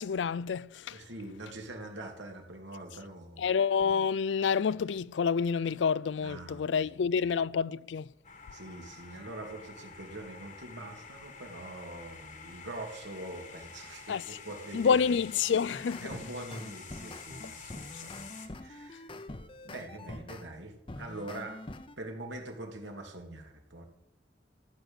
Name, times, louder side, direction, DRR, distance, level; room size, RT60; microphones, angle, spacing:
voice 1, 0.0-1.0 3.4-8.1 14.1-14.2 14.7-16.1, left 6 dB, 80° left, 0.4 m, -28 dB
voice 2, 0.9-3.4 6.2-6.9 8.5-15.1 16.0-18.3 18.6-19.1 19.6-21.6 22.0-23.8, right 2 dB, 85° right, 2.6 m, -44 dB
sound 1, 8.2-18.5, left 5 dB, 45° left, 1.4 m, -49 dB
sound 2, 15.7-20.5 20.9-22.0, left 2 dB, 30° left, 0.7 m, -45 dB
14.5 x 6.1 x 8.0 m
head